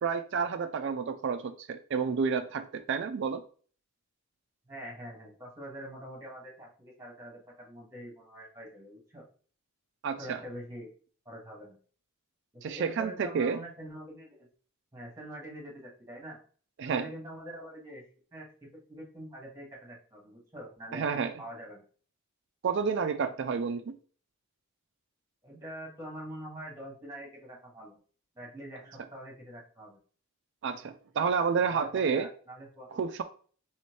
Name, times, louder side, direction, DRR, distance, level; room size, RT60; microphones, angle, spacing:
voice 1, 0.0-3.4 10.0-10.4 12.6-13.6 16.8-17.1 20.9-21.3 22.6-24.0 30.6-32.3 32.9-33.2, right 6 dB, 55° right, 8 dB, 0.4 m, -30 dB
voice 2, 4.6-9.2 10.2-10.9 11.2-11.8 12.5-14.5 14.9-16.4 16.8-18.0 18.3-21.8 25.4-28.0 28.3-30.0 31.7-32.9, right 1 dB, 15° right, -3 dB, 1.6 m, -45 dB
4.3 x 3.1 x 3.1 m, 0.42 s
head